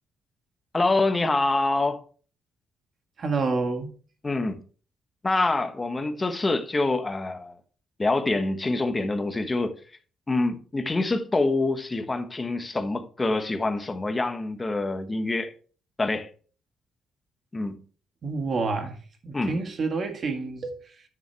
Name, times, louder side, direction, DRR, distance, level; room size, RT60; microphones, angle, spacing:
voice 1, 0.7-2.0 4.2-4.6 5.2-7.6 8.0-9.8 10.3-15.5 16.0-16.3 17.5-17.8 19.3-19.6, left 2 dB, 20° left, 1.2 m, -26 dB
voice 2, 3.2-3.9 18.2-19.0 19.2-21.0, right 4 dB, 50° right, 1.8 m, -28 dB
9.5 x 6.3 x 3.4 m
cardioid pair, 90°, 0 cm